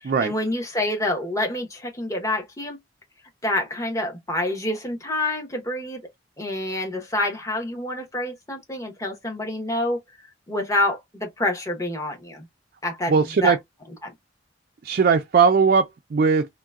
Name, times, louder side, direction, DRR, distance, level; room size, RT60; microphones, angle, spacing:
voice 1, 0.0-2.8 3.4-6.1 6.4-10.0 10.5-12.5 12.8-13.6 14.0-14.1, left 1 dB, 15° left, 0.9 m, -27 dB
voice 2, 13.1-13.6 14.8-16.5, right 5 dB, 50° right, 0.4 m, -19 dB
3.7 x 2.1 x 2.2 m
head